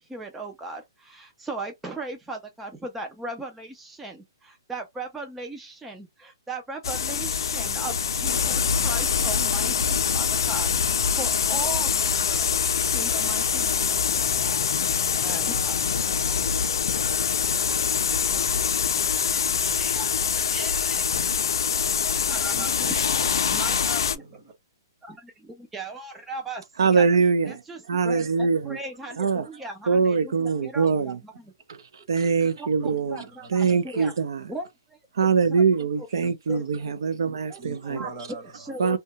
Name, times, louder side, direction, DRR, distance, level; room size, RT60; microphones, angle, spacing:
voice 1, 0.0-12.6 12.9-14.3 14.8-15.8 17.4-21.0 22.2-23.1 23.5-24.2 25.0-27.0 27.5-31.5 32.0-32.1 32.6-34.1 34.5-35.0 35.5-35.9 36.5-36.6 37.5-37.6 37.9-38.1 38.5-39.0, right 2 dB, 5° right, 0.3 m, -38 dB
sound 1, 6.8-24.2, left 6 dB, 75° left, 0.4 m, -24 dB
voice 2, 22.5-24.5 32.6-33.8 34.2-34.5 36.1-36.6 37.6-38.9, right 2 dB, 30° right, 1.0 m, -44 dB
voice 3, 26.8-27.6 27.9-28.8 29.2-29.5 29.9-31.2 31.7-33.2 33.5-34.5 35.1-38.0 38.8-39.0, right 5 dB, 75° right, 0.5 m, -23 dB
2.7 x 2.2 x 2.8 m
hypercardioid pair, 160°, 2 cm